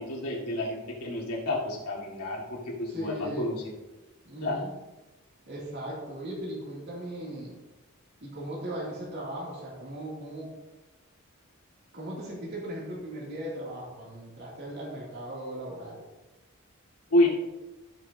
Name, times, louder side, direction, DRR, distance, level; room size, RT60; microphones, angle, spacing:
voice 1, 0.0-3.6 4.4-4.6 17.1-17.3, left 1 dB, 85° left, -4 dB, 2.1 m, -29 dB
voice 2, 2.9-3.5 4.2-4.7 5.5-7.5 8.2-10.5 11.9-16.0, right 1 dB, 50° right, -5 dB, 2.7 m, -38 dB
15.5 x 6.2 x 2.8 m, 1.1 s
head